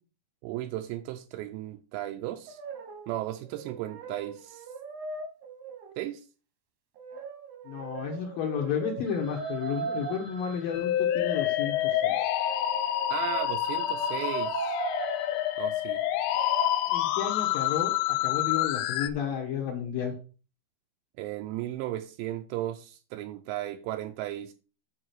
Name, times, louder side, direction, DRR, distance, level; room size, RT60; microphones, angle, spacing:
voice 1, 0.4-2.6 3.1-4.7 6.0-6.2 13.1-14.7 15.6-16.0 21.2-24.5, right 14 dB, 85° right, 2.7 m, -35 dB
Brass instrument, 2.5-3.2 3.4-6.0 7.0-10.2 11.5-15.4 16.3-16.8, right 6 dB, 60° right, 1.8 m, -39 dB
voice 2, 7.7-12.1 16.9-20.1, left 7 dB, 65° left, 2.6 m, -32 dB
Telephone, 9.1-12.8 13.3-13.4 13.6-16.5, equal, 30° right, 1.1 m, -52 dB
Musical instrument, 10.7-19.1, left 12 dB, 85° left, 2.9 m, -28 dB
8.0 x 4.9 x 6.2 m
omnidirectional pair, 5.1 m